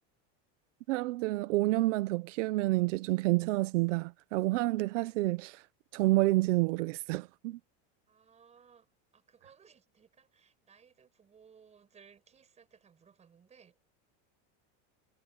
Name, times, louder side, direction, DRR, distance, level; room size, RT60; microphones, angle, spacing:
voice 1, 0.9-5.6 5.9-7.6, right 20 dB, 85° right, 1.0 m, -29 dB
voice 2, 8.1-13.8, right 7 dB, 20° right, 7.7 m, -61 dB
supercardioid pair, 170°, 36 cm